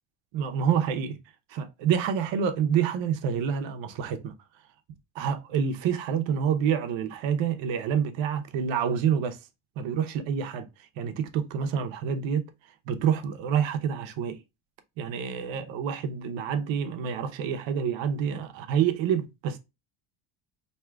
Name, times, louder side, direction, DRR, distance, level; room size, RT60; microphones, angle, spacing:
voice 1, 0.3-1.2 1.5-4.3 5.1-9.4 9.8-12.5 12.9-14.4 15.0-19.6, right 7 dB, 70° right, 0.8 m, -27 dB
4.5 x 2.9 x 2.2 m
cardioid pair, 165°, 47 cm